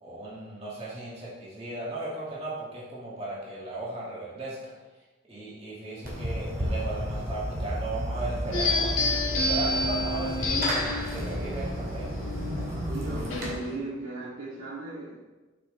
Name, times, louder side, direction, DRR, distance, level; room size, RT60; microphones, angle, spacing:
voice 1, 0.0-4.7 5.3-9.0 9.3-12.1, right 2 dB, 30° right, -7 dB, 2.2 m, -36 dB
Fireworks, 6.0-13.5, equal, 45° right, 2.4 m, -32 dB
sound 1, 8.5-13.7, left 2 dB, 75° left, 1.9 m, -30 dB
voice 2, 12.9-15.2, right 2 dB, 85° right, -5 dB, 2.7 m, -37 dB
11.5 x 6.0 x 3.3 m, 1.2 s
head